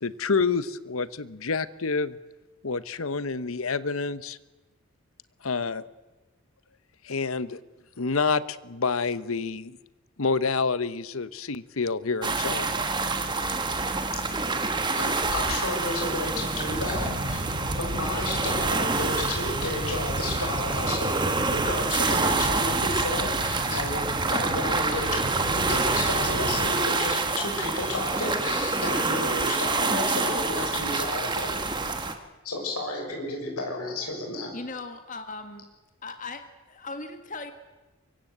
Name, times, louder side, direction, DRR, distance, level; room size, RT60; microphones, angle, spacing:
voice 1, 0.0-2.2 2.6-4.4 5.4-5.8 7.0-7.6 8.0-9.8 10.2-12.7 13.4-13.5, left 4 dB, 70° left, 15 dB, 1.0 m, -28 dB
sound 1, 12.2-32.1, right 3 dB, 20° right, 1.7 m, -27 dB
voice 2, 14.3-31.7 32.4-34.5, left 2 dB, 85° left, 2 dB, 6.0 m, -32 dB
sound 2, 16.7-26.7, equal, 60° right, 4.2 m, -35 dB
sound 3, 25.2-30.3, left 1 dB, 10° left, 3.3 m, -44 dB
voice 3, 34.5-35.7 36.0-37.5, left 3 dB, 35° left, 7 dB, 1.8 m, -38 dB
25.0 x 23.5 x 8.0 m, 1.2 s
head